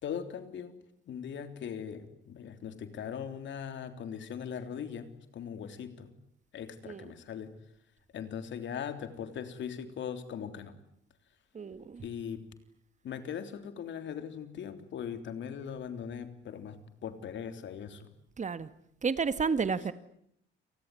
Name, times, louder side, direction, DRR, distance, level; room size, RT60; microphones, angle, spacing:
voice 1, 0.0-0.7 1.1-6.1 6.5-7.5 8.1-10.7 12.0-12.4 13.0-18.1, left 8 dB, 70° left, 9 dB, 3.5 m, -40 dB
voice 2, 11.5-12.0 18.4-18.7 19.0-19.9, right 5 dB, 35° right, 14 dB, 1.6 m, -31 dB
29.0 x 19.5 x 9.9 m, 0.72 s
cardioid pair, 90°, 20 cm